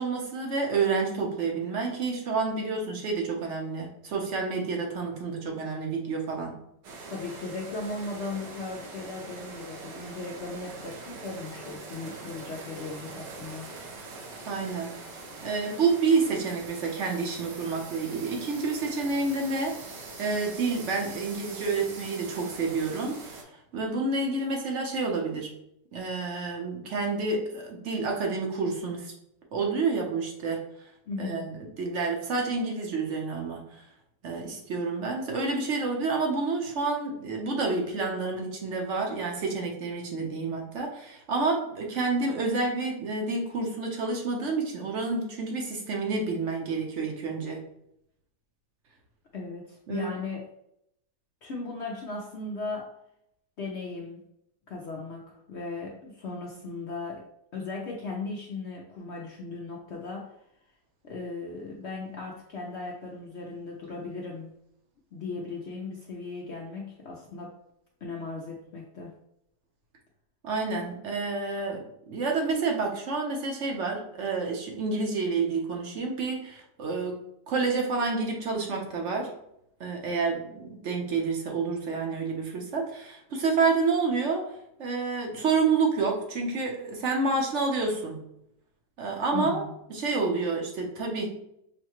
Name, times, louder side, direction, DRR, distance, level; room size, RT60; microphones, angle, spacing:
voice 1, 0.0-6.5 14.5-14.9 15.4-19.9 20.2-23.5 23.7-25.5 25.9-29.1 29.5-30.6 31.2-33.8 34.2-47.6 49.9-50.1 70.4-77.2 77.5-79.3 79.8-84.5 84.8-88.2 89.0-89.6 89.9-91.3, right 4 dB, 50° right, 1 dB, 1.0 m, -29 dB
sound 1, 6.8-23.4, right 3 dB, 80° right, 1.5 m, -43 dB
voice 2, 7.1-13.7 31.1-31.5 49.3-50.5 51.4-52.9 53.6-54.2 54.7-57.3 57.5-60.3 61.0-64.5 65.1-67.6 68.0-69.1 89.3-89.7, left 3 dB, 65° left, -2 dB, 0.6 m, -37 dB
6.3 x 2.2 x 3.0 m, 0.76 s
omnidirectional pair, 1.8 m